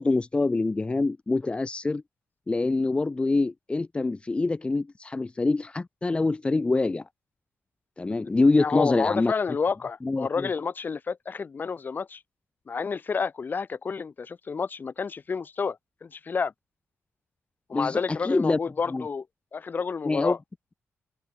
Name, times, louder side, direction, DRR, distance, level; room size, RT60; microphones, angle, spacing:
voice 1, 0.0-2.0 2.5-7.1 8.0-9.3 10.0-10.5 17.7-18.6 18.9-19.1 20.0-20.4, left 3 dB, 20° left, 7.6 m, -25 dB
voice 2, 8.6-12.2 12.7-16.5 17.7-19.2 19.5-20.4, left 5 dB, 40° left, 7.9 m, -30 dB
cardioid pair, 120°, 5 cm